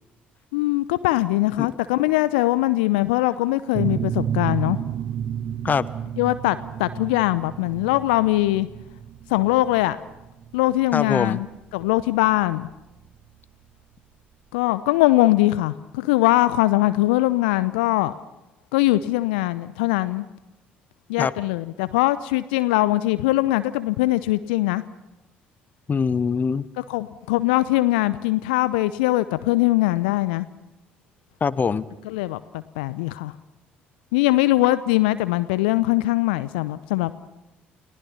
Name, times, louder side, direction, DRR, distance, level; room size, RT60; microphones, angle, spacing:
voice 1, 0.5-4.8 6.2-8.7 9.3-10.0 10.5-11.5 11.7-12.7 14.5-18.1 18.7-20.2 21.1-24.8 26.8-30.5 32.0-32.4 32.8-33.3 34.1-37.1, left 17 dB, 70° left, 15 dB, 0.7 m, -21 dB
sound 1, 3.7-13.1, right 9 dB, 45° right, 1.0 m, -31 dB
voice 2, 10.9-11.4 21.2-21.3 25.9-26.6 31.4-31.8, left 5 dB, 30° left, 18 dB, 1.0 m, -22 dB
29.5 x 19.0 x 5.7 m, 0.97 s
figure-of-eight pair, 50°, 5 cm